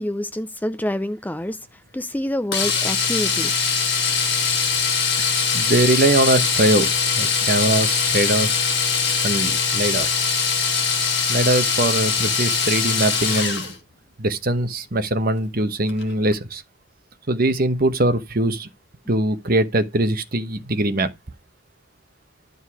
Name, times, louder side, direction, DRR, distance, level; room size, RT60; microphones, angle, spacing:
voice 1, 0.0-1.6 1.9-3.5 15.9-16.0, left 1 dB, 10° left, 0.5 m, -27 dB
Domestic sounds home sounds, 2.5-13.8 15.9-16.0 16.3-16.4, left 6 dB, 55° left, 2.3 m, -21 dB
voice 2, 5.5-8.5 9.2-10.1 11.3-13.7 14.2-16.6 17.3-18.7 19.1-21.1, right 1 dB, 45° right, 1.1 m, -21 dB
11.5 x 5.4 x 4.7 m
head